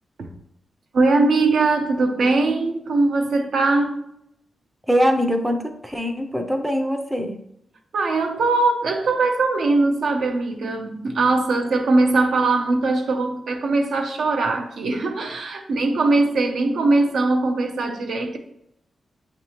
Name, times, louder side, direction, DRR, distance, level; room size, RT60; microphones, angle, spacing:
voice 1, 0.9-4.0 7.9-18.4, right 3 dB, 70° right, 5 dB, 0.6 m, -21 dB
voice 2, 4.9-7.4, equal, 5° right, 4 dB, 0.4 m, -22 dB
6.9 x 2.6 x 2.9 m, 0.77 s
wide cardioid pair, 130°, 0 cm